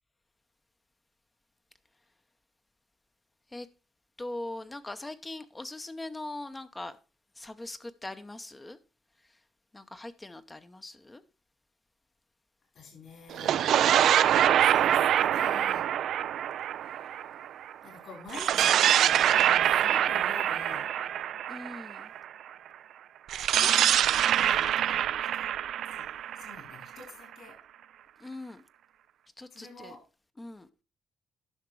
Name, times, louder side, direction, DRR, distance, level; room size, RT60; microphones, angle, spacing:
voice 1, 4.2-7.0 7.4-8.8 9.7-11.2 21.5-22.1 28.2-28.6 29.4-29.9 30.4-30.7, left 2 dB, 20° left, 10 dB, 0.8 m, -41 dB
voice 2, 12.7-13.6 14.6-15.9 16.8-20.9 23.6-25.4 25.9-27.6 29.5-30.0, left 4 dB, 60° left, 3 dB, 4.8 m, -48 dB
sound 1, 13.3-17.7 18.3-22.2 23.3-27.1, right 10 dB, 75° right, 0.4 m, -25 dB
11.0 x 5.9 x 4.6 m, 0.33 s
cardioid pair, 90°, 0 cm